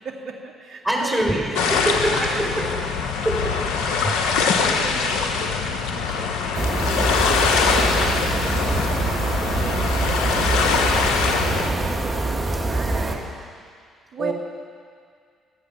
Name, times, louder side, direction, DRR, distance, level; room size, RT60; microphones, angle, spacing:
voice 1, 0.0-11.9 12.6-13.4 14.1-14.3, right 4 dB, 60° right, 2 dB, 2.1 m, -37 dB
voice 2, 0.8-2.1 3.2-3.3 4.0-4.1 4.7-4.8 11.4-11.7 14.2-14.3, right 1 dB, 5° right, -1 dB, 4.8 m, -24 dB
sound 1, 1.6-11.7, left 5 dB, 75° left, 1.2 m, -23 dB
sound 2, 6.5-13.2, right 2 dB, 30° right, 2.3 m, -24 dB
26.0 x 8.8 x 6.1 m, 2.1 s
hypercardioid pair, 50°, 0 cm